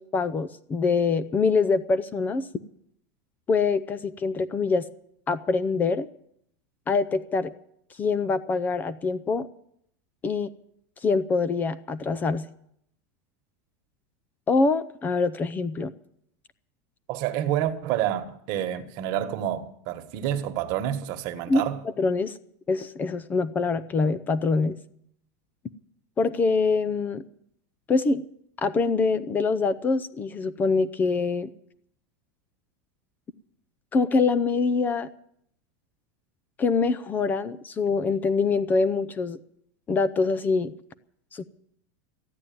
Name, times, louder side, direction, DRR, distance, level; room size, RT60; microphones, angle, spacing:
voice 1, 0.0-2.5 3.5-4.8 5.3-6.1 6.9-7.5 8.0-9.5 10.2-10.5 11.0-12.4 14.5-15.9 21.5-22.4 22.7-24.8 26.2-27.2 27.9-28.2 28.6-31.5 33.9-35.1 36.6-39.4 39.9-40.7 41.3-41.4, left 4 dB, 20° left, 0.5 m, -24 dB
voice 2, 17.1-21.8, right 11 dB, 45° right, 1.5 m, -28 dB
14.5 x 9.6 x 9.3 m
supercardioid pair, 155°, 9 cm